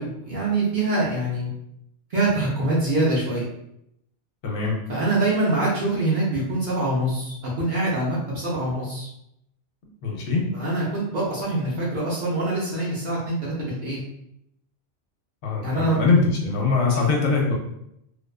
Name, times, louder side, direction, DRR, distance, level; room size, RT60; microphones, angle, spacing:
voice 1, 0.0-1.5 2.1-3.4 4.9-9.1 10.5-14.0 15.6-16.0 16.9-17.1, right 2 dB, 50° right, -7 dB, 0.6 m, -24 dB
voice 2, 4.4-4.8 10.0-10.5 15.4-17.5, left 4 dB, 65° left, -1 dB, 0.8 m, -22 dB
2.4 x 2.2 x 2.3 m, 0.78 s
omnidirectional pair, 1.3 m